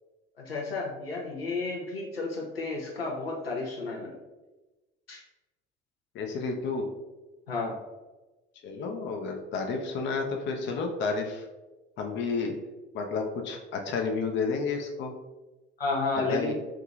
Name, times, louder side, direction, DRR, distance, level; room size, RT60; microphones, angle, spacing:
voice 1, 0.4-4.2 5.1-5.2 7.5-7.7 15.8-16.5, left 3 dB, 85° left, -2 dB, 0.7 m, -32 dB
voice 2, 6.1-6.8 8.6-11.4 12.0-12.5 12.9-15.1 16.3-16.5, left 4 dB, 40° left, 3 dB, 0.6 m, -31 dB
4.7 x 2.7 x 2.4 m, 1.1 s
figure-of-eight pair, 55°, 29 cm